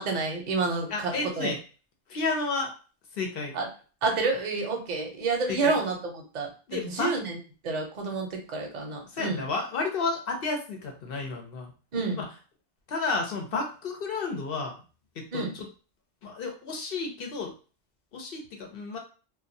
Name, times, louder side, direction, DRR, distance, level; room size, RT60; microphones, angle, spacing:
voice 1, 0.0-1.5 3.5-3.7 4.0-6.5 6.8-7.4 7.6-9.4 11.9-12.2 15.3-15.5, right 3 dB, 45° right, 1 dB, 0.7 m, -29 dB
voice 2, 0.9-1.6 2.1-2.7 3.1-3.6 5.5-5.8 6.7-7.2 9.1-11.7 12.2-12.3 12.9-14.8 15.1-15.7 16.2-17.5 18.1-19.0, left 3 dB, 60° left, 2 dB, 0.8 m, -31 dB
2.3 x 2.2 x 2.6 m, 0.36 s
omnidirectional pair, 1.2 m